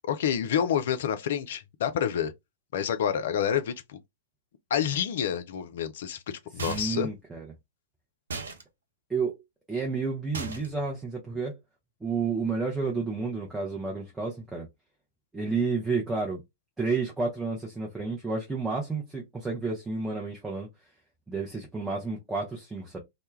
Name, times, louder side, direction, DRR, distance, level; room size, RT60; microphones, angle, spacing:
voice 1, 0.0-2.3 2.7-4.0 4.7-7.1, left 9 dB, 55° left, 0.4 m, -28 dB
sound 1, 6.6-7.1 8.3-8.6 10.3-10.8, right 4 dB, 65° right, 0.5 m, -36 dB
voice 2, 6.7-7.5 9.1-9.3 9.7-11.5 12.0-14.7 15.3-16.4 16.8-20.7 21.3-23.0, right 4 dB, 5° right, 0.6 m, -30 dB
2.2 x 2.1 x 3.1 m
figure-of-eight pair, 105°, 0 cm